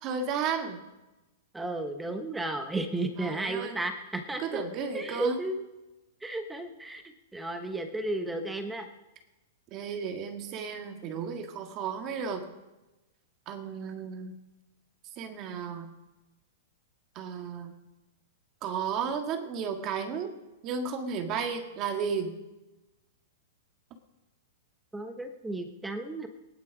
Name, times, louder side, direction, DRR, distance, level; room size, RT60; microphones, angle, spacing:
voice 1, 0.0-0.8 3.2-3.8 4.4-5.4 9.7-12.5 13.5-14.4 15.2-15.9 17.2-17.7 18.6-20.3 20.6-22.3, right 6 dB, 35° right, 4 dB, 1.8 m, -33 dB
voice 2, 1.5-4.6 4.9-5.6 6.2-7.0 7.3-8.9 24.9-26.3, right 2 dB, 5° right, 6 dB, 1.1 m, -33 dB
17.5 x 11.0 x 5.0 m, 1.0 s
hypercardioid pair, 150°, 0 cm